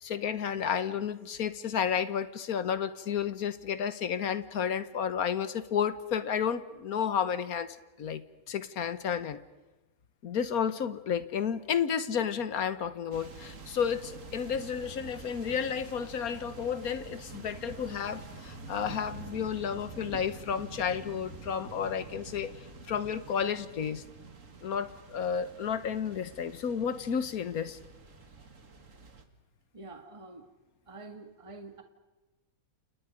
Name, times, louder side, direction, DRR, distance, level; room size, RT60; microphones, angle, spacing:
voice 1, 0.0-8.2 8.5-9.4 10.2-22.5 22.9-24.0 24.6-27.8, left 7 dB, 80° left, 13 dB, 1.6 m, -32 dB
sound 1, 13.1-29.2, right 3 dB, 60° right, 2.2 m, -47 dB
voice 2, 29.7-30.5 30.9-31.8, right 3 dB, 20° right, 5 dB, 1.5 m, -47 dB
29.5 x 29.0 x 5.2 m, 1.1 s
omnidirectional pair, 1.5 m